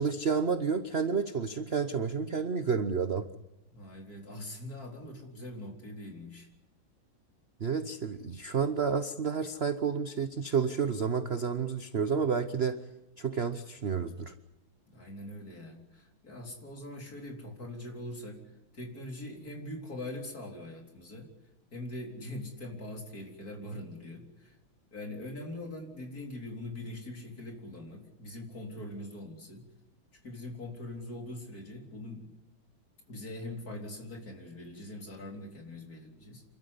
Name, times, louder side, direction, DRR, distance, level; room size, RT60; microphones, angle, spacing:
voice 1, 0.0-3.3 7.6-12.8 13.2-14.3, right 6 dB, 45° right, 10 dB, 0.8 m, -30 dB
voice 2, 3.7-6.5 14.9-18.4 18.7-21.3 21.7-24.6 24.9-29.7 30.2-32.3 33.1-36.4, left 1 dB, 45° left, 2 dB, 4.4 m, -42 dB
28.0 x 13.0 x 9.8 m, 0.96 s
omnidirectional pair, 2.2 m